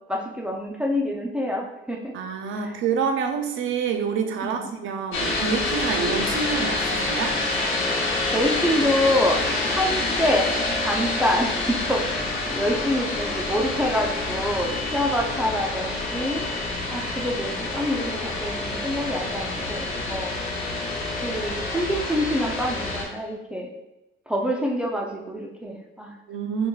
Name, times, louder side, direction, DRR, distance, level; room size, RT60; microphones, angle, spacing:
voice 1, 0.1-2.1 2.6-2.7 4.4-4.7 8.3-10.5 10.8-16.5 16.9-20.4 21.2-23.7 24.3-26.1, left 1 dB, 5° right, 0 dB, 0.5 m, -26 dB
voice 2, 2.1-7.4 26.3-26.7, right 6 dB, 80° right, 6 dB, 0.5 m, -27 dB
sound 1, 5.1-23.0, left 2 dB, 85° left, 0.7 m, -27 dB
5.4 x 2.2 x 2.3 m, 0.96 s
cardioid pair, 90°, 20 cm